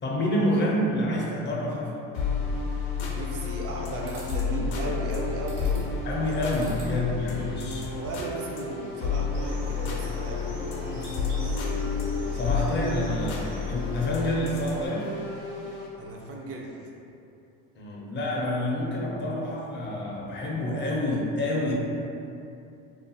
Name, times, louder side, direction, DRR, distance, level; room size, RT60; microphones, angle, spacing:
voice 1, 0.0-2.0 6.0-8.0 10.9-11.6 12.3-15.1 17.8-21.7, left 1 dB, 35° left, -3 dB, 0.5 m, -28 dB
sound 1, 2.1-16.0, left 5 dB, 85° left, 0.5 m, -31 dB
voice 2, 3.1-5.9 6.9-7.4 7.9-10.6 16.0-16.7, right 2 dB, 45° right, -1 dB, 0.4 m, -36 dB
sound 2, 3.1-3.7 4.1-4.4 5.5-6.0 6.5-6.9 7.3-8.4, right 2 dB, 90° right, 0.9 m, -46 dB
sound 3, 9.3-14.9, left 1 dB, 70° right, 0.8 m, -39 dB
2.3 x 2.3 x 2.6 m, 2.7 s
supercardioid pair, 85°, 33 cm